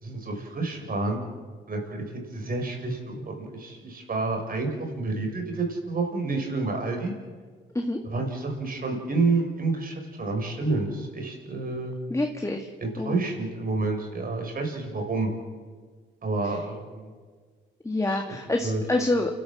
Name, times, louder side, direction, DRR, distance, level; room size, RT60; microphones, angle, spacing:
voice 1, 0.0-1.2 1.7-2.0 2.3-7.1 8.1-11.9 12.8-15.3 16.2-17.1 18.1-18.4 18.6-18.8, right 3 dB, 45° right, 3 dB, 6.0 m, -29 dB
voice 2, 12.1-13.2 16.4-16.6 17.8-19.3, left 2 dB, 15° left, 3 dB, 1.9 m, -27 dB
29.0 x 12.5 x 7.6 m, 1.5 s
cardioid pair, 75°, 20 cm